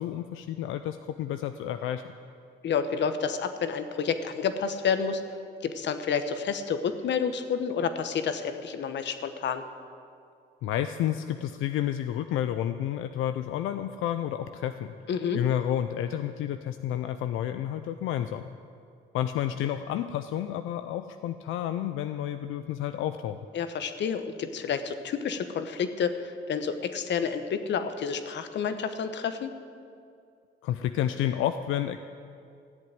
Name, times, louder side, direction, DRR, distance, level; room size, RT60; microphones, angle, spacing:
voice 1, 0.0-2.0 10.6-14.9 15.3-18.4 19.1-23.4 30.6-32.0, left 11 dB, 90° left, 9 dB, 0.5 m, -30 dB
voice 2, 2.6-5.2 5.6-9.6 15.1-15.4 23.5-29.5, left 6 dB, 65° left, 9 dB, 1.1 m, -29 dB
14.5 x 7.7 x 9.2 m, 2.4 s
cardioid pair, 90°, 20 cm